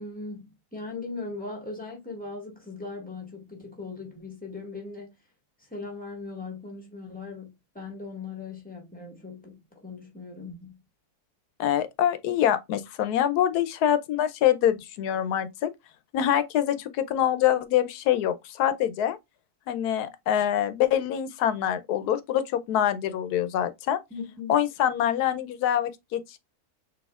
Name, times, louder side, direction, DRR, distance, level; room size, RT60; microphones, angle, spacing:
voice 1, 0.0-5.1 5.6-10.8 24.1-24.6, left 3 dB, 5° left, 1.5 m, -39 dB
voice 2, 11.6-15.7 16.1-19.2 19.7-24.0 24.5-26.4, left 10 dB, 90° left, 1.2 m, -25 dB
6.2 x 3.0 x 2.3 m
omnidirectional pair, 1.6 m